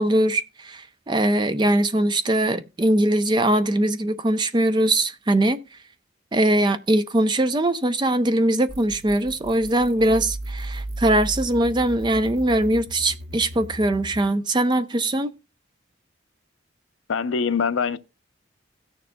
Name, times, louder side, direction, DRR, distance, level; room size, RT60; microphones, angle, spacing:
voice 1, 0.0-5.6 6.3-15.3, right 1 dB, 20° right, 0.4 m, -21 dB
sound 1, 8.7-14.3, right 1 dB, 75° right, 0.9 m, -35 dB
voice 2, 17.1-18.0, left 5 dB, 80° left, 0.5 m, -23 dB
17.0 x 6.7 x 2.2 m
head